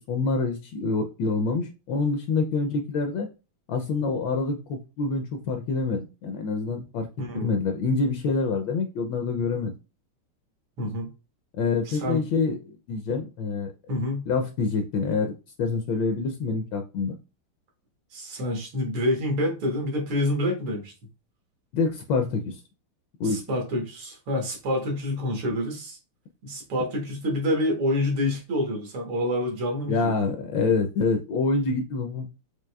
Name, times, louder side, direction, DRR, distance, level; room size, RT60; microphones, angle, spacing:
voice 1, 0.1-3.3 3.7-7.1 7.3-9.7 11.6-12.6 12.9-13.7 14.3-17.2 21.7-22.6 23.2-23.4 29.9-32.3, left 4 dB, 75° left, 5 dB, 1.2 m, -26 dB
voice 2, 7.2-7.5 10.8-11.1 11.9-12.2 13.9-14.2 18.1-20.9 23.2-26.0 26.4-30.1, left 1 dB, 85° right, 1 dB, 2.1 m, -27 dB
6.1 x 2.6 x 2.2 m, 0.30 s
omnidirectional pair, 2.3 m